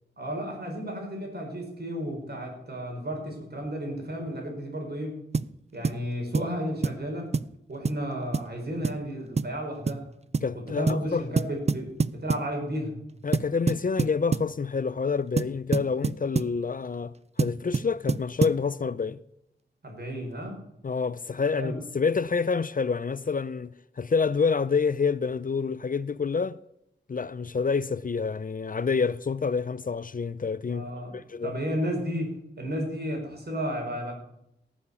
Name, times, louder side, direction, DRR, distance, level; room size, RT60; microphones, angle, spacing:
voice 1, 0.2-5.2 5.7-7.3 7.7-10.0 10.5-13.0 19.8-20.6 21.6-21.8 30.7-31.2 31.4-34.1, equal, 60° right, 4.9 m, -33 dB
sound 1, 5.3-5.5 5.8-6.0 6.3-6.6 6.8-7.0 7.3-7.5 7.8-8.0 8.3-8.5 8.8-9.0 9.4-9.6 9.9-10.0 10.3-10.5 10.9-11.1 11.4-12.5 13.3-14.5 15.4-16.6 17.4-18.6, right 4 dB, 35° right, 0.4 m, -27 dB
voice 2, 10.4-11.3 13.2-19.2 20.8-26.6 27.1-30.9 31.1-31.5, left 5 dB, 45° left, 0.5 m, -28 dB
18.0 x 7.2 x 6.9 m
wide cardioid pair, 65°, 19 cm